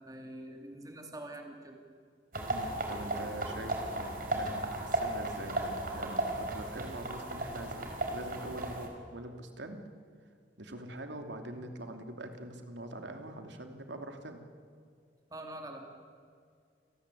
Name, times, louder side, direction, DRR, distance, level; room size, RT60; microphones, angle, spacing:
voice 1, 0.0-1.8 15.3-15.9, right 1 dB, 20° right, 3 dB, 2.8 m, -45 dB
sound 1, 2.3-8.9, right 1 dB, 50° right, 4.4 m, -35 dB
voice 2, 2.5-9.8 10.6-14.4, right 1 dB, 70° right, 5 dB, 2.9 m, -44 dB
28.5 x 19.5 x 8.5 m, 2.2 s
head